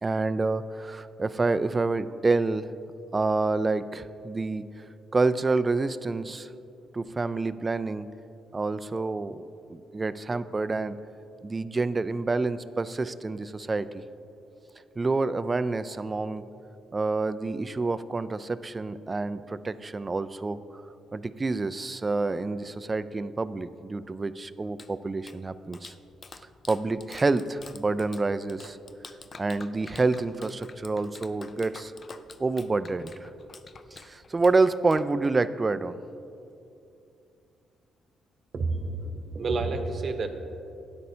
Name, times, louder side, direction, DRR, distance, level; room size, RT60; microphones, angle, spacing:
voice 1, 0.0-2.7 3.1-4.7 5.1-6.5 6.9-8.1 8.5-9.4 9.7-11.0 11.4-14.0 15.0-16.4 16.9-20.6 21.1-25.9 26.7-28.8 29.4-31.9 32.4-33.3 33.9-36.0, right 3 dB, 25° right, 13 dB, 0.3 m, -28 dB
Clapping, 24.5-35.6, left 4 dB, 40° left, 0.4 m, -49 dB
voice 2, 38.5-40.3, right 3 dB, 45° right, 6 dB, 0.9 m, -29 dB
12.5 x 9.6 x 2.7 m, 2.7 s
cardioid pair, 90°, 0 cm